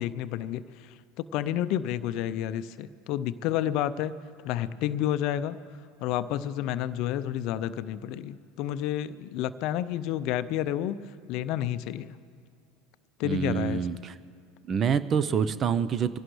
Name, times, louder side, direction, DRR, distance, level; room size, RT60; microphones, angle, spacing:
voice 1, 0.0-4.1 4.4-5.6 6.0-11.0 11.3-12.1 13.2-13.8, left 11 dB, 55° left, 13 dB, 0.5 m, -30 dB
voice 2, 13.2-14.1 14.7-16.2, right 7 dB, 35° right, 14 dB, 0.6 m, -26 dB
25.0 x 17.0 x 3.2 m, 2.4 s
figure-of-eight pair, 75°, 0 cm